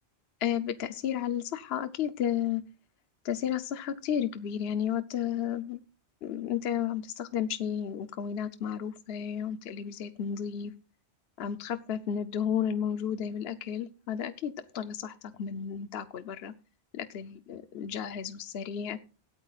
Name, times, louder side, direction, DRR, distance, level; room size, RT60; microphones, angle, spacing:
voice 1, 0.4-2.6 3.2-5.8 6.2-10.7 11.4-16.5 16.9-19.0, left 9 dB, 70° left, 10 dB, 0.9 m, -32 dB
18.0 x 12.0 x 2.4 m, 0.34 s
omnidirectional pair, 1.1 m